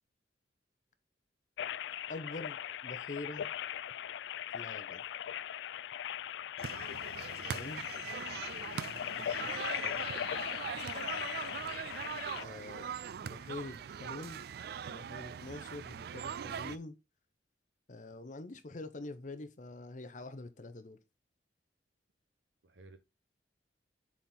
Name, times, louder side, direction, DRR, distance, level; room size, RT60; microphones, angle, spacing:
sound 1, 1.6-12.4, left 10 dB, 75° left, 0.3 m, -39 dB
voice 1, 2.1-3.5 4.5-5.0 7.5-7.8 8.7-10.3 12.4-12.9 13.2-14.4 14.8-16.9 17.9-21.0, left 2 dB, 45° left, 0.8 m, -45 dB
sound 2, 6.6-16.8, right 7 dB, 60° right, 0.3 m, -41 dB
voice 2, 6.9-7.7 8.1-8.4 22.6-23.0, right 2 dB, 85° right, 1.0 m, -58 dB
7.2 x 4.3 x 3.8 m
head